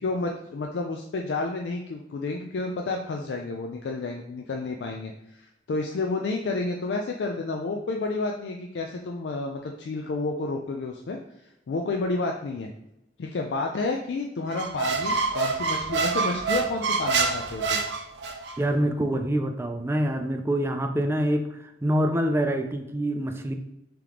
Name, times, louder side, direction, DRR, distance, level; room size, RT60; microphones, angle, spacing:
voice 1, 0.0-11.2 11.7-12.7 13.2-17.8, left 3 dB, 80° left, 1 dB, 0.4 m, -30 dB
Squeak, 14.5-18.6, right 4 dB, 75° right, 0.5 m, -26 dB
voice 2, 18.6-23.6, right 1 dB, 15° right, 6 dB, 0.3 m, -26 dB
3.4 x 3.0 x 3.6 m, 0.86 s
head